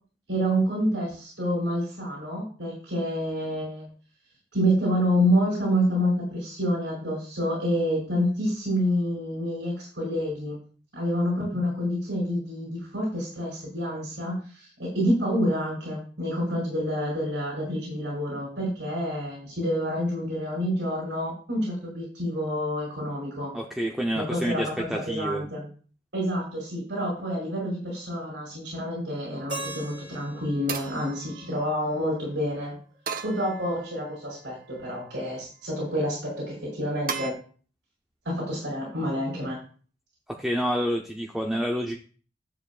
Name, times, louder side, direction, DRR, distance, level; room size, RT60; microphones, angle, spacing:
voice 1, 0.3-3.9 4.5-10.6 10.9-23.5 24.1-25.7 26.1-32.7 33.2-37.4 38.3-39.6, equal, 90° right, -5 dB, 5.3 m, -28 dB
voice 2, 23.5-25.5 40.4-42.0, equal, ahead, 0 dB, 0.7 m, -28 dB
sound 1, 29.3-29.8 30.7-32.0 33.1-34.1 34.7-35.3 37.1-37.3, right 6 dB, 50° right, 0.8 m, -38 dB
Keyboard (musical), 29.5-32.5, right 2 dB, 70° right, 2.6 m, -41 dB
12.0 x 7.7 x 2.4 m, 0.40 s
head